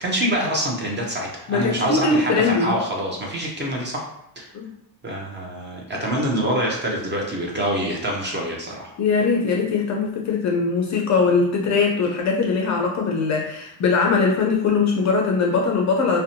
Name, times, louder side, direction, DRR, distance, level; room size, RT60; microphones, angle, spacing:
voice 1, 0.0-4.0 4.4-4.5 5.0-8.9, equal, 25° right, -1 dB, 0.5 m, -25 dB
voice 2, 1.5-2.8 4.5-4.7 9.0-16.2, left 4 dB, 35° left, 0 dB, 0.4 m, -21 dB
2.6 x 2.1 x 2.6 m, 0.76 s
cardioid pair, 105°, 49 cm